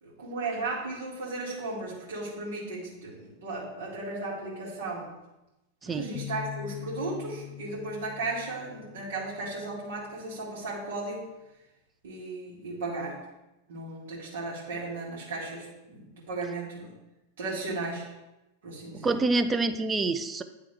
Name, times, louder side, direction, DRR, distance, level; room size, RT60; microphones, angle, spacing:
voice 1, 0.0-5.1 5.9-11.3 12.0-13.2 13.7-16.9 17.4-18.1 18.6-19.2, right 2 dB, 60° right, -5 dB, 2.1 m, -35 dB
sound 1, 6.1-9.8, left 13 dB, 55° left, 0.4 m, -42 dB
voice 2, 18.9-20.4, right 3 dB, 15° right, 9 dB, 0.4 m, -27 dB
9.7 x 3.4 x 3.4 m, 0.98 s
figure-of-eight pair, 90°, 0 cm